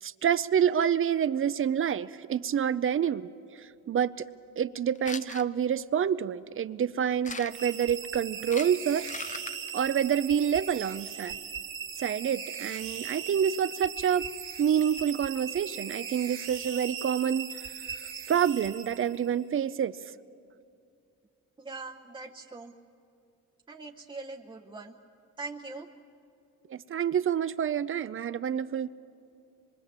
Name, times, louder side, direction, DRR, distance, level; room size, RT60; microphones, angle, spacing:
voice 1, 0.0-3.3 3.6-4.3 4.6-9.1 9.7-11.4 12.0-14.3 14.6-17.7 18.3-20.0 26.7-28.9, right 8 dB, 45° right, 15 dB, 0.6 m, -27 dB
sound 1, 4.9-5.4 7.2-7.7 8.4-9.7, left 4 dB, 25° left, 0.8 m, -39 dB
sound 2, 7.5-19.4, right 7 dB, 80° right, 2.8 m, -39 dB
voice 2, 21.6-22.7 23.7-25.0 25.4-25.9, right 3 dB, 15° right, 2 dB, 0.9 m, -41 dB
25.0 x 23.0 x 7.4 m, 2.4 s
cardioid pair, 90°, 30 cm